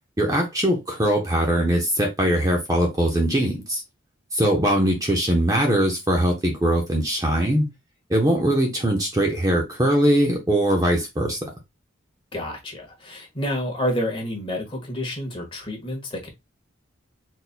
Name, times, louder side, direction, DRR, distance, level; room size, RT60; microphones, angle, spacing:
voice 1, 0.2-3.8 4.3-7.7 8.1-11.4, right 1 dB, 20° right, 0.9 m, -21 dB
voice 2, 12.3-16.3, left 1 dB, 25° left, 1.5 m, -29 dB
4.2 x 4.2 x 2.2 m
head